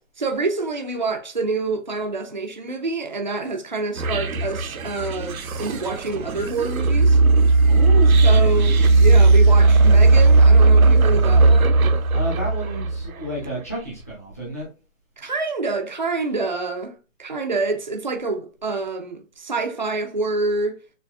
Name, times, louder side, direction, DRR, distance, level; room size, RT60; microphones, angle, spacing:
voice 1, 0.2-7.2 8.2-11.8 15.2-16.9 17.2-20.8, right 3 dB, 35° right, 0.4 m, -27 dB
sound 1, 4.0-13.2, right 3 dB, 85° right, 0.8 m, -16 dB
voice 2, 7.7-8.9 12.1-14.7, right 1 dB, 10° left, 0.6 m, -31 dB
6.7 x 2.5 x 2.2 m
hypercardioid pair, 165°, 41 cm